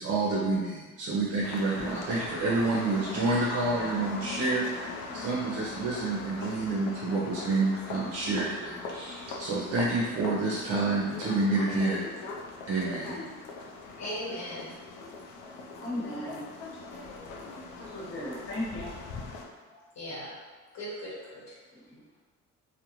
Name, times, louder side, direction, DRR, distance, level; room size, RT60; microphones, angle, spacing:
voice 1, 0.0-12.0 12.7-13.2, right 3 dB, 50° right, -5 dB, 0.5 m, -29 dB
sound 1, 1.4-19.5, left 3 dB, 80° left, 0.5 m, -40 dB
voice 2, 14.0-14.7 19.7-20.4 20.7-21.5, equal, 60° left, -6 dB, 1.0 m, -38 dB
voice 3, 15.8-16.4 17.8-18.9 21.7-22.2, left 1 dB, 45° left, -8 dB, 1.2 m, -37 dB
2.4 x 2.1 x 2.9 m, 1.3 s
cardioid pair, 90°, 30 cm